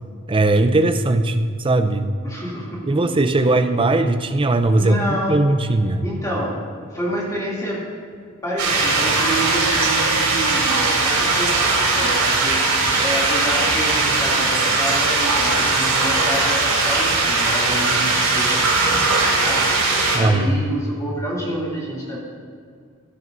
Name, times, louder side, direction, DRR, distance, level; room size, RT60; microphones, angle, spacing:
voice 1, 0.3-2.1 2.9-6.0 20.1-20.5, right 2 dB, 25° right, 8 dB, 0.5 m, -19 dB
voice 2, 2.2-3.6 4.8-5.4 6.0-6.6 6.9-7.9 8.4-12.6 13.0-18.8 19.4-19.7 20.1-22.2, equal, 15° left, -5 dB, 2.8 m, -28 dB
sound 1, 8.6-20.2, right 3 dB, 80° right, 3.5 m, -19 dB
16.0 x 12.5 x 2.7 m, 2.1 s
head